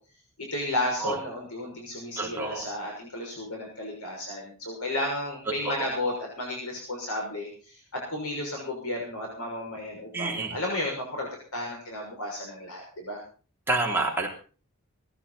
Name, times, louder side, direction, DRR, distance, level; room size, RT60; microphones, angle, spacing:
voice 1, 0.5-13.2, left 1 dB, 80° left, -1 dB, 6.3 m, -33 dB
voice 2, 2.2-2.6 5.6-5.9 10.1-10.6 13.7-14.3, right 2 dB, 10° right, -2 dB, 3.4 m, -28 dB
19.0 x 14.5 x 4.2 m, 0.38 s
head